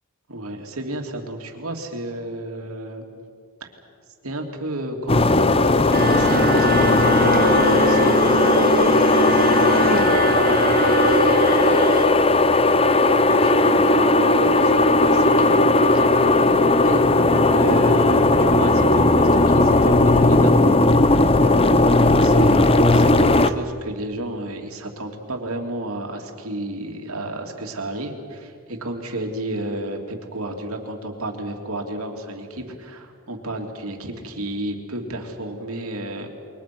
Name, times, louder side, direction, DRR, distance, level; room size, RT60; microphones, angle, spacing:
voice 1, 0.3-3.1 3.6-3.7 4.2-11.4 13.1-16.1 16.8-17.1 17.4-21.5 22.0-36.3, right 1 dB, 85° right, 3 dB, 3.0 m, -32 dB
sound 1, 5.1-23.5, left 2 dB, 25° left, 0.7 m, -16 dB
sound 2, 5.9-12.1, right 2 dB, 45° right, 1.5 m, -24 dB
28.5 x 23.5 x 6.2 m, 2.2 s
head